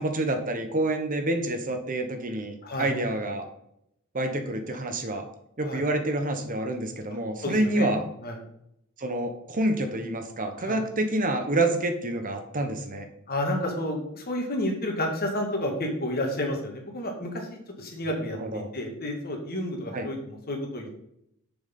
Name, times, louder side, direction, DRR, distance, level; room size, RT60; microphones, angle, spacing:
voice 1, 0.0-3.5 4.1-5.3 5.6-8.0 9.0-13.1 18.2-18.7 19.9-20.1, right 1 dB, 40° right, 6 dB, 1.1 m, -28 dB
voice 2, 7.4-7.9 8.2-8.4 10.6-10.8 13.3-21.0, left 1 dB, 45° left, 2 dB, 1.9 m, -31 dB
6.9 x 6.2 x 5.4 m, 0.75 s
head